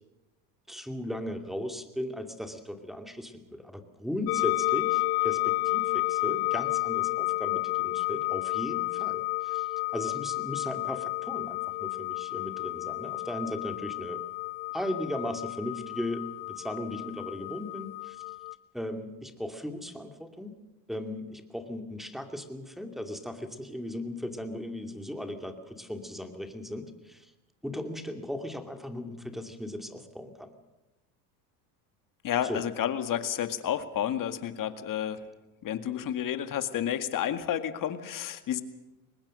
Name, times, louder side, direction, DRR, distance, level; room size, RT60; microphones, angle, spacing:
voice 1, 0.7-14.2 14.7-18.2 18.7-20.6 20.9-27.3 27.6-30.5 32.4-32.6, left 1 dB, ahead, 5 dB, 2.6 m, -37 dB
sound 1, 4.3-18.5, left 23 dB, 80° left, 0.8 m, -31 dB
voice 2, 32.2-35.2 35.6-38.6, left 10 dB, 45° left, 9 dB, 2.0 m, -31 dB
23.0 x 20.0 x 6.5 m, 1.1 s
supercardioid pair, 100°, 45 cm